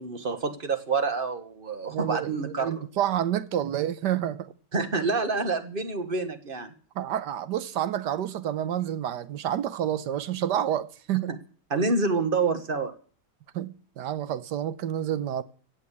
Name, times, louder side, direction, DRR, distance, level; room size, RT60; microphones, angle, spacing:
voice 1, 0.0-2.8 4.7-6.7 11.7-12.9, right 4 dB, 35° right, 1.4 m, -27 dB
voice 2, 1.9-4.5 6.9-11.4 13.5-15.4, right 11 dB, 75° right, 1.4 m, -29 dB
16.5 x 7.5 x 8.3 m
omnidirectional pair, 1.9 m